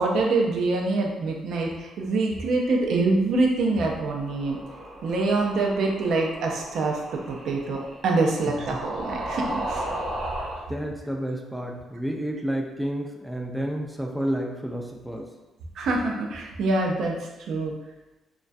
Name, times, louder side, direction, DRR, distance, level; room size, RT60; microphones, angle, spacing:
voice 1, 0.0-4.6 5.0-7.0 7.3-9.9 15.8-17.7, right 3 dB, 75° right, 0 dB, 0.4 m, -25 dB
sound 1, 4.0-10.6, right 1 dB, 50° right, 0.8 m, -35 dB
voice 2, 8.5-8.8 10.7-15.3, equal, 5° right, 0 dB, 0.3 m, -30 dB
2.2 x 2.2 x 2.5 m, 1.1 s
cardioid pair, 90°, 0 cm